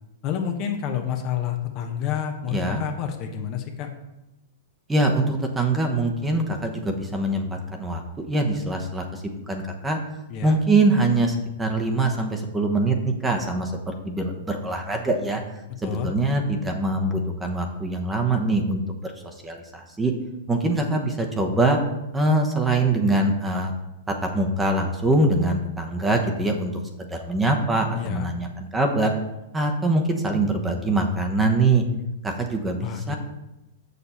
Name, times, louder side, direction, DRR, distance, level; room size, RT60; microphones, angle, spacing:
voice 1, 0.2-3.9 10.3-10.6 15.8-16.1 27.9-28.3 32.8-33.1, left 9 dB, 40° left, 4 dB, 1.0 m, -29 dB
voice 2, 2.5-2.8 4.9-10.0 10.4-15.4 15.8-19.1 19.4-20.1 20.5-21.8 22.1-23.7 24.1-26.7 27.0-29.1 29.5-31.8 32.2-33.1, right 2 dB, 10° right, 3 dB, 1.1 m, -23 dB
6.8 x 6.6 x 4.3 m, 0.95 s
hypercardioid pair, 120°, 0 cm